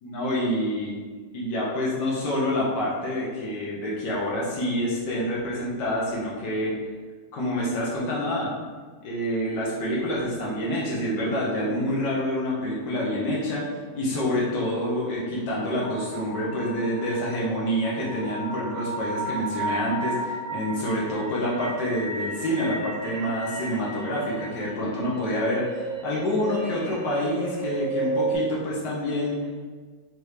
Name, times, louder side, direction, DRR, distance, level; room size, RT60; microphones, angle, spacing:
voice 1, 0.0-0.9 1.3-6.8 7.3-8.5 9.0-29.5, equal, 75° left, -5 dB, 1.7 m, -27 dB
sound 1, 15.8-28.3, right 2 dB, 40° right, 1.4 m, -34 dB
4.6 x 3.4 x 3.3 m, 1.5 s
omnidirectional pair, 1.9 m